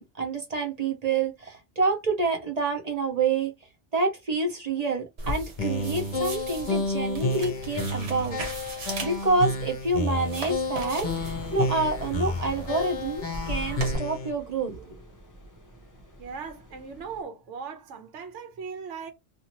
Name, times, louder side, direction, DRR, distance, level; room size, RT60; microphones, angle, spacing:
voice 1, 0.0-3.5 3.9-8.4 9.0-14.8, right 3 dB, 40° right, 0.7 m, -28 dB
sound 1, 5.2-14.0, right 1 dB, 65° right, 1.2 m, -38 dB
sound 2, 5.6-14.3, left 2 dB, 45° left, 0.9 m, -30 dB
sound 3, 11.0-17.2, equal, 20° left, 0.6 m, -44 dB
voice 2, 16.2-19.1, right 5 dB, 80° right, 1.1 m, -38 dB
2.7 x 2.6 x 2.9 m
omnidirectional pair, 1.2 m